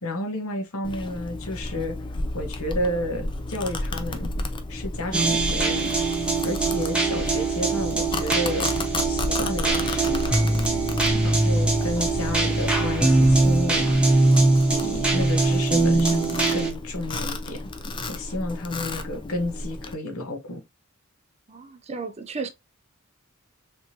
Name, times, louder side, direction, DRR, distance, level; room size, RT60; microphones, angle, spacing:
voice 1, 0.0-2.0 2.3-4.3 4.7-5.9 6.4-8.7 9.1-10.5 11.2-14.0 14.7-17.6 18.1-20.6, left 1 dB, 85° left, 1.0 m, -31 dB
Domestic sounds home sounds, 0.8-19.9, left 2 dB, 25° left, 0.4 m, -32 dB
sound 1, 5.1-16.7, right 2 dB, 5° right, 0.8 m, -22 dB
voice 2, 21.5-22.5, right 4 dB, 30° right, 0.5 m, -34 dB
3.3 x 3.0 x 2.7 m
head